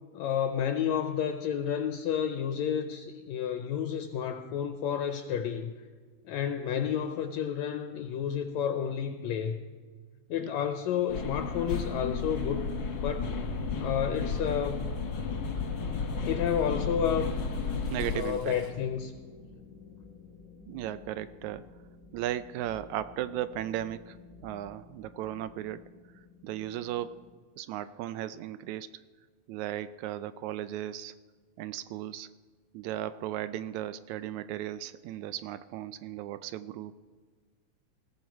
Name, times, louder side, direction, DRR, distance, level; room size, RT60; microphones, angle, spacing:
voice 1, 0.1-5.7 6.3-9.6 10.3-13.3 13.8-14.8 16.2-17.3 18.1-19.1, left 8 dB, 75° left, 7 dB, 1.9 m, -31 dB
sound 1, 11.1-18.2, left 4 dB, 45° left, 1.7 m, -33 dB
sound 2, 13.1-27.3, left 3 dB, 25° right, 3.8 m, -51 dB
Toilet flush / Trickle dribble, 16.3-18.7, equal, 50° right, 3.7 m, -52 dB
voice 2, 17.9-18.6 20.7-21.6 22.1-25.8 26.4-27.3 27.6-28.9 29.5-31.1 31.6-32.3 32.7-36.9, right 12 dB, 80° right, 13 dB, 1.8 m, -36 dB
19.5 x 16.0 x 4.6 m, 1.5 s
omnidirectional pair, 3.5 m